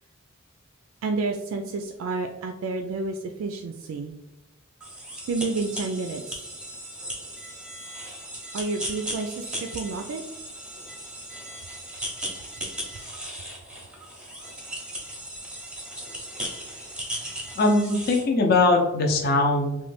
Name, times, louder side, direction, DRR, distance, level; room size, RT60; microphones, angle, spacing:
voice 1, 1.0-4.1 5.3-6.4 8.5-10.2, right 3 dB, 75° right, 4 dB, 0.3 m, -30 dB
sound 1, 4.8-18.3, right 1 dB, 5° right, 0.7 m, -37 dB
voice 2, 17.6-19.8, left 2 dB, 50° left, 2 dB, 0.6 m, -21 dB
3.1 x 2.2 x 3.1 m, 0.95 s
head